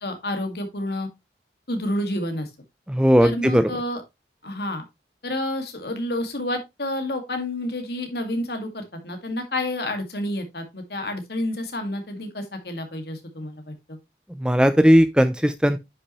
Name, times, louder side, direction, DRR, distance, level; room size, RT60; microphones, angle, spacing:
voice 1, 0.0-1.1 1.7-2.5 3.2-4.0 4.4-4.8 5.2-14.0, left 1 dB, 60° left, 2.1 m, -29 dB
voice 2, 2.9-3.7 14.4-15.8, equal, 5° right, 0.5 m, -17 dB
9.7 x 5.9 x 3.1 m
head